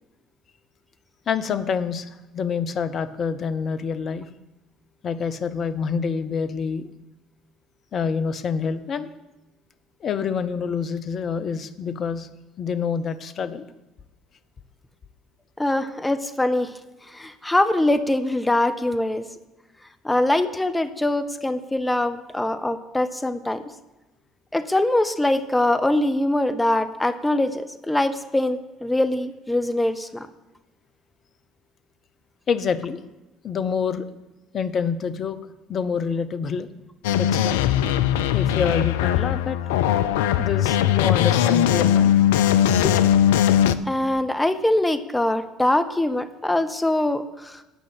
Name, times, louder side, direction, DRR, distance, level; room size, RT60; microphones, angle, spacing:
voice 1, 1.3-4.3 5.0-6.9 7.9-9.1 10.0-12.3 12.6-13.7 32.5-33.0 33.4-34.1 34.5-35.4 35.7-36.7 37.2-37.6 38.3-39.6 40.4-42.2 42.8-43.0, left 6 dB, 45° left, 12 dB, 0.8 m, -27 dB
voice 2, 15.6-16.7 17.1-19.2 20.0-23.6 24.5-30.3 43.8-47.6, left 1 dB, 10° left, 10 dB, 0.9 m, -23 dB
sound 1, 37.0-43.7, left 10 dB, 75° left, 0.4 m, -19 dB
9.2 x 5.5 x 8.0 m, 1.1 s
hypercardioid pair, 55°, 0 cm